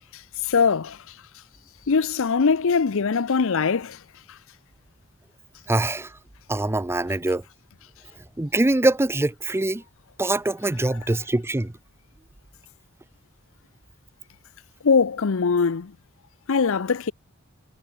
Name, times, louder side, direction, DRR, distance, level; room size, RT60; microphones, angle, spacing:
voice 1, 0.5-1.0 1.9-4.0 14.8-15.9 16.5-17.1, left 5 dB, 65° left, 0.6 m, -21 dB
voice 2, 5.7-6.1 6.5-7.4 8.4-9.8 10.2-11.7, right 2 dB, 10° right, 0.5 m, -23 dB
head